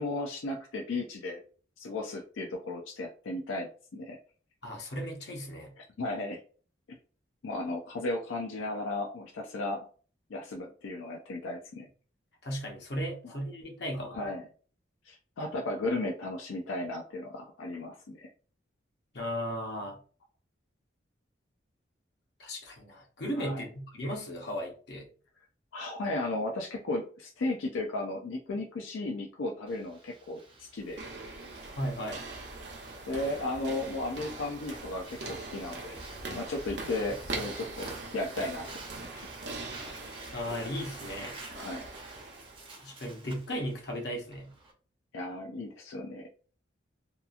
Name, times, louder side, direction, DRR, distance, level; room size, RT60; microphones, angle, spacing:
voice 1, 0.0-1.4 1.8-4.2 5.8-6.4 7.4-9.9 10.3-11.9 13.2-13.3 13.9-14.4 15.0-18.3 23.4-23.6 25.7-31.0 33.1-36.0 36.3-38.7 41.5-41.9 45.1-46.3, left 2 dB, 90° left, 1 dB, 0.4 m, -35 dB
voice 2, 4.6-5.7 12.4-14.2 19.1-20.0 22.4-25.1 31.8-32.2 40.3-41.4 42.8-44.5, equal, 60° left, 1 dB, 0.7 m, -36 dB
Breathing, 29.7-44.7, right 2 dB, 25° right, 0.6 m, -51 dB
sound 1, 30.8-42.7, right 3 dB, 65° right, 0.7 m, -42 dB
2.9 x 2.3 x 2.4 m, 0.41 s
head